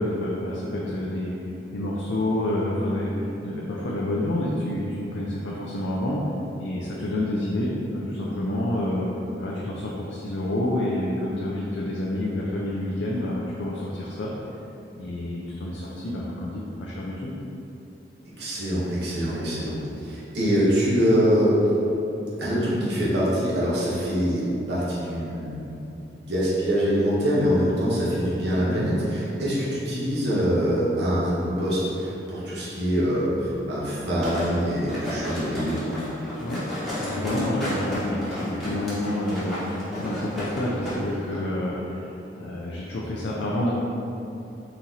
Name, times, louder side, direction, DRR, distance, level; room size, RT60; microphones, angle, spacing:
voice 1, 0.0-1.3 1.7-6.3 6.6-9.1 9.4-14.3 14.9-17.3 28.7-28.9 36.4-36.7 36.9-43.7, left 1 dB, 90° left, -5 dB, 0.5 m, -28 dB
voice 2, 18.4-21.6 22.4-25.7 26.1-35.8, equal, 70° right, -8 dB, 1.2 m, -24 dB
sound 1, 34.2-41.0 41.3-41.4, left 1 dB, ahead, 1.2 m, -32 dB
4.3 x 2.9 x 3.8 m, 2.9 s
head